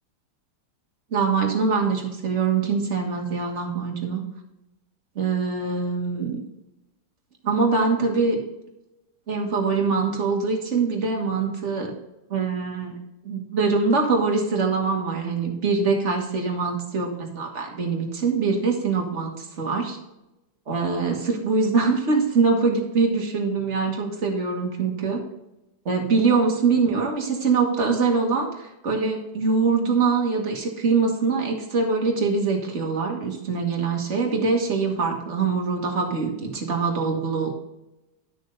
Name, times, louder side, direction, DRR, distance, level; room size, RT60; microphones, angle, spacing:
voice 1, 1.1-4.2 5.2-6.4 7.4-8.4 9.3-11.9 12.3-12.9 13.2-20.0 20.7-25.2 25.9-37.5, right 4 dB, 35° right, 1 dB, 1.8 m, -23 dB
11.0 x 6.3 x 4.0 m, 0.96 s
omnidirectional pair, 2.2 m